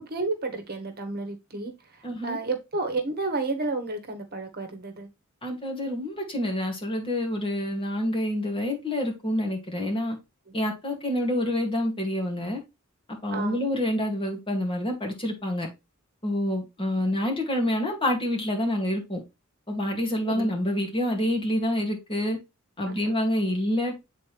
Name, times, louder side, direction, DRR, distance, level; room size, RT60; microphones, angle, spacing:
voice 1, 0.0-5.1 10.5-10.6 13.3-13.6 20.3-20.6 22.8-23.1, right 3 dB, 50° right, 1.3 m, -31 dB
voice 2, 2.0-2.4 5.4-10.2 10.5-12.6 13.2-15.7 16.2-19.2 19.7-22.4 22.8-24.0, left 1 dB, 25° left, 2.2 m, -27 dB
8.3 x 4.0 x 3.3 m
head